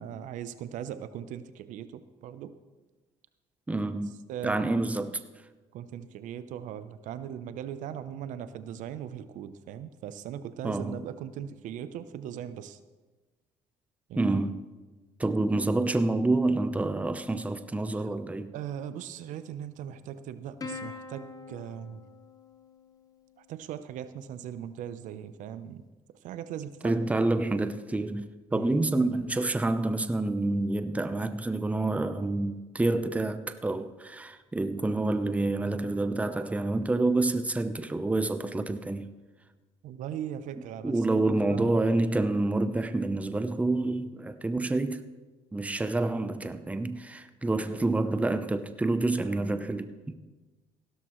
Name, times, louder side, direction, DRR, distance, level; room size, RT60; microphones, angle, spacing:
voice 1, 0.0-2.5 4.3-4.8 5.7-12.8 14.1-14.4 18.0-18.1 18.5-22.0 23.4-25.8 26.2-27.1 28.5-28.7 39.8-41.2 41.5-41.9, right 9 dB, 70° right, 0.7 m, -39 dB
voice 2, 3.7-4.1 4.4-5.2 10.6-11.0 14.2-14.6 15.2-18.5 26.8-39.1 40.8-45.0 45.5-50.1, right 2 dB, 10° right, 0.7 m, -28 dB
Plucked string instrument, 20.6-23.3, left 4 dB, 25° left, 1.3 m, -43 dB
16.0 x 12.5 x 3.1 m
cardioid pair, 95°, 13 cm